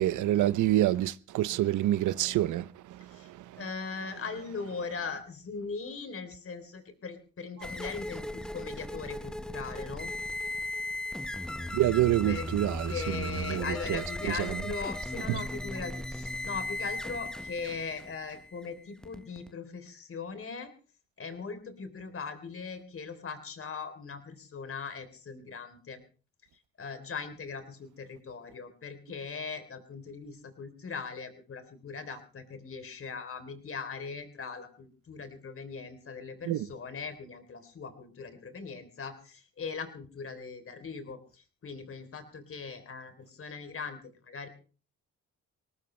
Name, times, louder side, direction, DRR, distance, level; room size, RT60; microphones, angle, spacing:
voice 1, 0.0-3.0 3.2-3.4 11.7-14.0 14.4-14.5 36.5-36.7, right 14 dB, 80° right, 0.7 m, -27 dB
voice 2, 3.0-3.3 3.6-10.1 12.3-12.5 12.9-20.7 21.2-26.0 26.8-44.5, left 5 dB, 45° left, 3.4 m, -40 dB
sound 1, 7.6-19.5, left 1 dB, ahead, 0.8 m, -37 dB
20.5 x 18.5 x 3.2 m
cardioid pair, 90°, 30 cm